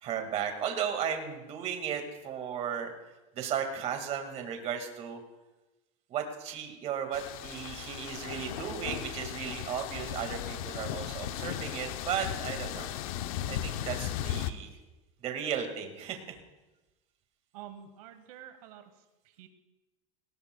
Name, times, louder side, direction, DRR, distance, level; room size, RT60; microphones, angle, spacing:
voice 1, 0.0-2.9 3.4-5.2 6.1-12.9 13.4-14.7 15.2-16.2, right 8 dB, 35° right, 5 dB, 1.9 m, -35 dB
sound 1, 7.1-14.5, left 11 dB, 80° left, 0.8 m, -36 dB
voice 2, 17.5-19.5, right 10 dB, 90° right, 8 dB, 1.2 m, -49 dB
18.0 x 18.0 x 2.3 m, 1.1 s
supercardioid pair, 155°, 18 cm